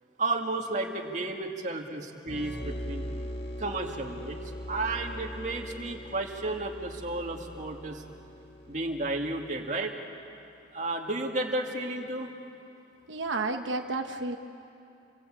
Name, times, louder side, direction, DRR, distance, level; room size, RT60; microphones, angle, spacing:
voice 1, 0.2-3.0 3.6-4.4 4.7-8.1 8.7-9.9 10.7-12.3, right 2 dB, 40° right, 2 dB, 2.2 m, -32 dB
sound 1, 2.2-9.8, equal, 70° left, 2.9 m, -41 dB
voice 2, 13.1-14.4, right 3 dB, 85° right, 5 dB, 1.1 m, -31 dB
29.0 x 22.0 x 8.8 m, 2.7 s
head